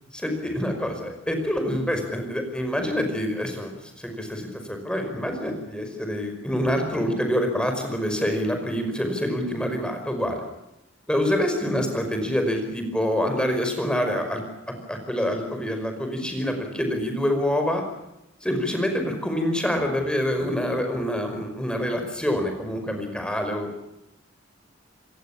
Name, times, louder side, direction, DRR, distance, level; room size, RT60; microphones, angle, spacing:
voice 1, 0.2-10.4 11.1-17.8 18.4-23.8, equal, 5° left, 5 dB, 5.3 m, -26 dB
27.5 x 21.0 x 7.3 m, 0.88 s
head